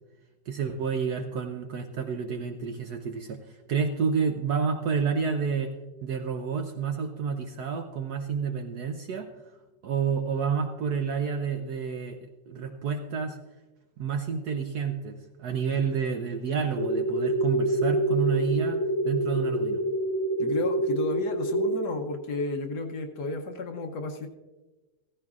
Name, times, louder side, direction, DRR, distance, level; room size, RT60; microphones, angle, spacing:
voice 1, 0.5-3.4 3.7-5.7 6.0-9.3 9.8-12.2 12.5-13.4 14.0-18.8 19.0-19.8, right 6 dB, 65° right, 6 dB, 1.0 m, -29 dB
sound 1, 16.8-21.8, right 1 dB, 80° left, 1.7 m, -26 dB
voice 2, 20.4-24.3, left 3 dB, 65° left, 5 dB, 1.2 m, -32 dB
15.0 x 14.5 x 2.4 m, 1.2 s
omnidirectional pair, 2.2 m